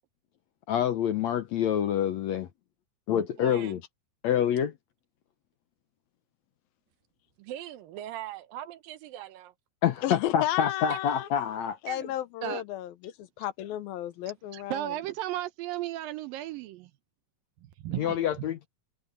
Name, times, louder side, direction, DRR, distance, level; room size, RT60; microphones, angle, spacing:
voice 1, 0.7-2.5 3.1-3.8 4.2-4.7 9.8-11.8 18.0-18.7, left 9 dB, 70° left, 1.8 m, -27 dB
voice 2, 3.4-3.8 7.4-9.5 10.9-11.0 11.9-12.1 12.4-12.6 14.5-16.9 17.6-18.2, right 14 dB, 75° right, 2.6 m, -36 dB
voice 3, 10.0-11.3 11.8-14.9, left 13 dB, 85° left, 2.8 m, -33 dB
omnidirectional pair, 4.1 m